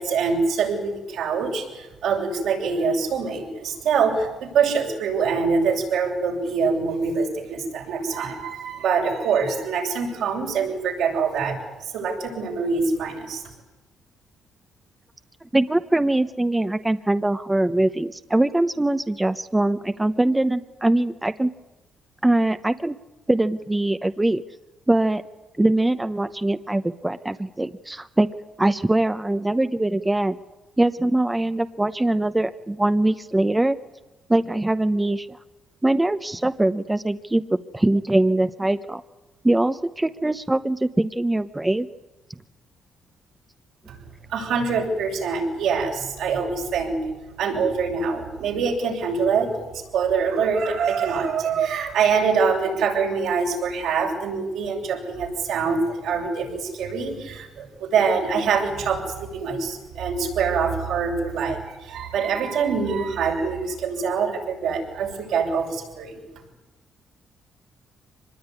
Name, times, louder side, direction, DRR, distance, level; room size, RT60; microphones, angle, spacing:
voice 1, 0.0-11.6 11.8-13.4 44.3-47.0 47.4-49.7 49.9-66.2, right 5 dB, 85° right, 0 dB, 6.9 m, -24 dB
voice 2, 15.5-21.5 22.2-22.9 23.3-24.4 24.9-25.2 25.6-28.3 28.6-30.4 30.8-33.8 34.3-35.3 35.8-39.0 39.4-41.9, right 1 dB, 10° right, 10 dB, 0.9 m, -22 dB
24.5 x 20.5 x 9.8 m, 1.0 s
cardioid pair, 90°, 0 cm